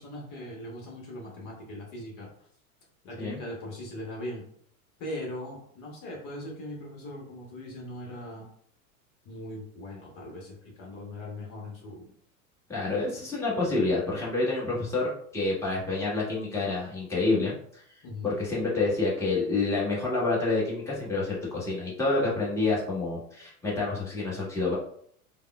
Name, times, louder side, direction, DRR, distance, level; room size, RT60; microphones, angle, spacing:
voice 1, 0.0-2.3 3.0-4.4 5.0-8.5 9.2-12.1 18.0-18.4, left 1 dB, 45° left, -2 dB, 1.1 m, -40 dB
voice 2, 12.7-17.8 18.2-24.8, left 3 dB, 5° left, -7 dB, 1.2 m, -28 dB
3.4 x 2.1 x 2.3 m, 0.62 s
hypercardioid pair, 100°, 44 cm